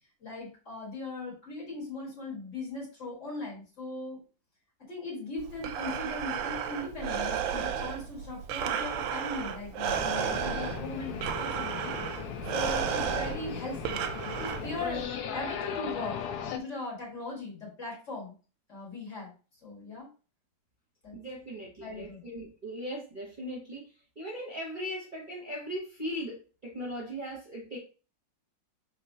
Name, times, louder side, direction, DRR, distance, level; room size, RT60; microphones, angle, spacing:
voice 1, 0.2-4.2 4.9-12.2 12.5-15.0 15.3-16.2 16.4-18.3 18.7-19.3 19.6-20.1 21.0-21.2 21.8-22.2, left 2 dB, 40° left, -3 dB, 1.8 m, -39 dB
Breathing, 5.4-15.0, right 8 dB, 90° right, 1.3 m, -33 dB
sound 1, 9.9-16.6, left 8 dB, 70° left, 1.0 m, -37 dB
voice 2, 21.1-27.8, equal, 35° right, -3 dB, 0.8 m, -39 dB
4.2 x 3.6 x 2.7 m, 0.36 s
omnidirectional pair, 2.0 m